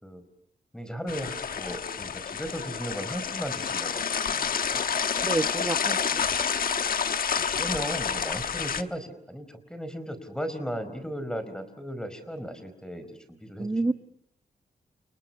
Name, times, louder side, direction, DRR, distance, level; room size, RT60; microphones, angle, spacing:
voice 1, 0.7-4.8 7.5-13.9, equal, 5° left, 10 dB, 4.6 m, -36 dB
sound 1, 1.1-8.8, left 6 dB, 65° left, 1.2 m, -29 dB
voice 2, 5.2-6.3 13.6-13.9, right 2 dB, 20° right, 8 dB, 1.0 m, -28 dB
30.0 x 29.5 x 5.6 m, 0.72 s
wide cardioid pair, 120°, 16 cm